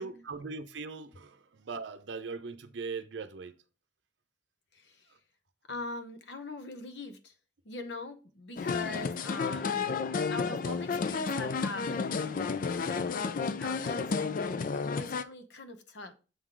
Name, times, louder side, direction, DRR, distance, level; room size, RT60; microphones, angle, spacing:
voice 1, 0.0-3.5 9.6-10.0, right 4 dB, 85° right, 0.6 m, -40 dB
voice 2, 4.7-5.1 5.7-7.3 7.6-16.1, left 3 dB, 70° left, 0.9 m, -43 dB
sound 1, 8.6-15.2, left 5 dB, 50° left, 0.4 m, -32 dB
7.0 x 3.8 x 4.6 m
head